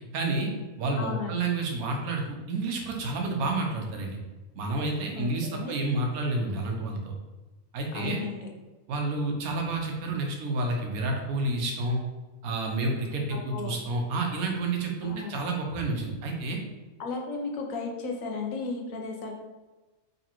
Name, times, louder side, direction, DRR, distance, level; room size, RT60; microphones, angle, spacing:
voice 1, 0.1-0.5 0.8-4.2 4.5-7.1 7.7-8.2 8.9-12.0 12.4-16.6, right 2 dB, 85° right, 1 dB, 1.2 m, -29 dB
voice 2, 1.0-1.5 5.1-5.7 7.9-8.5 13.3-13.8 15.0-15.4 17.0-19.3, left 4 dB, 75° left, 1 dB, 1.1 m, -35 dB
3.8 x 3.1 x 2.9 m, 1.2 s
omnidirectional pair, 1.5 m